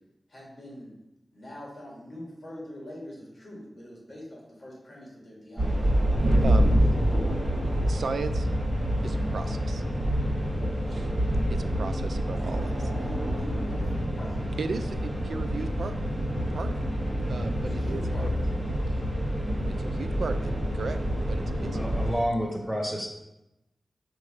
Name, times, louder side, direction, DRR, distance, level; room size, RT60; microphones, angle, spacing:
voice 1, 0.3-0.9 1.3-5.8 6.2-7.3 12.9-14.5 17.6-18.5, left 1 dB, 35° left, -4 dB, 2.1 m, -43 dB
sound 1, 5.6-22.1, equal, 30° right, 1.5 m, -27 dB
voice 2, 6.4-6.8 7.9-8.5 9.0-9.8 10.9-11.1 11.5-12.7 14.6-15.9 16.5-16.8 17.3-18.3 19.8-20.5 20.7-21.7, right 4 dB, 85° right, 9 dB, 0.4 m, -35 dB
voice 3, 21.7-23.1, equal, 5° right, -1 dB, 1.2 m, -29 dB
6.5 x 3.1 x 5.0 m, 0.91 s
wide cardioid pair, 120°, 0 cm